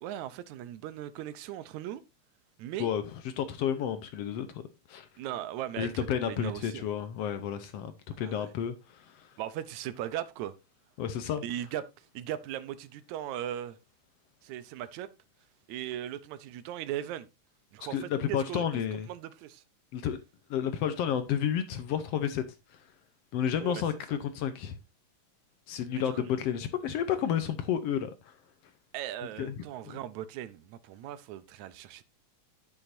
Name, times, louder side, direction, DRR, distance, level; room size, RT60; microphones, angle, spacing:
voice 1, 0.0-2.0 2.6-2.9 5.2-6.9 8.2-8.5 9.4-10.5 11.4-11.8 12.1-13.8 14.4-15.1 15.7-17.3 17.7-18.8 19.1-19.6 23.6-23.8 25.9-26.3 28.9-32.0, right 12 dB, 80° right, 2.1 m, -38 dB
voice 2, 2.8-4.6 4.9-5.1 5.8-9.3 11.0-11.4 17.9-19.1 19.9-20.2 20.5-22.4 23.3-24.8 25.7-28.3 29.4-30.0, left 9 dB, 70° left, 1.7 m, -31 dB
9.0 x 8.8 x 2.6 m
omnidirectional pair, 3.3 m